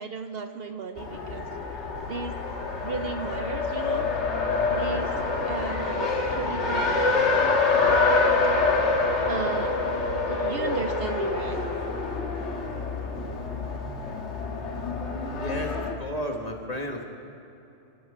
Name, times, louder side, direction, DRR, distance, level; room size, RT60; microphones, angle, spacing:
voice 1, 0.0-1.5 2.1-2.4 2.8-4.1 4.7-5.1 5.4-7.2 9.3-10.0 10.3-11.6, right 4 dB, 60° right, 7 dB, 0.9 m, -35 dB
Race car auto racing, 1.0-15.9, left 3 dB, 70° left, 1.7 m, -26 dB
voice 2, 15.4-17.0, equal, 35° left, 2 dB, 1.6 m, -32 dB
27.5 x 12.0 x 3.7 m, 2.9 s
omnidirectional pair, 1.2 m